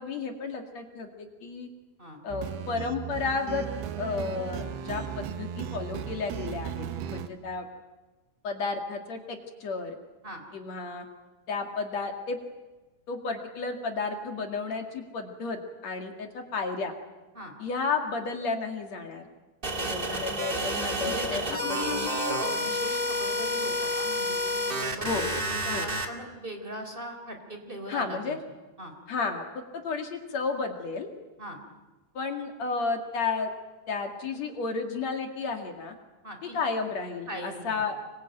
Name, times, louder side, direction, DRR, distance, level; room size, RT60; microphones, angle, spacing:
voice 1, 0.0-1.7 2.2-3.7 4.0-6.9 7.1-7.7 8.4-10.0 10.5-11.1 11.5-12.4 13.1-16.9 17.6-19.2 19.8-22.1 25.0-25.3 25.7-25.9 27.9-28.4 29.1-31.1 32.1-33.5 33.9-35.9 36.4-38.0, left 4 dB, 45° left, 4 dB, 2.9 m, -32 dB
sound 1, 2.3-7.3, right 8 dB, 75° right, 3.2 m, -36 dB
sound 2, 19.6-26.1, equal, 30° right, 1.0 m, -30 dB
voice 2, 19.9-20.3 21.0-28.4 28.8-28.9 31.4-31.6 36.2-36.6 37.3-37.8, equal, 15° right, 5 dB, 3.1 m, -39 dB
26.0 x 23.0 x 9.1 m, 1.2 s
omnidirectional pair, 4.8 m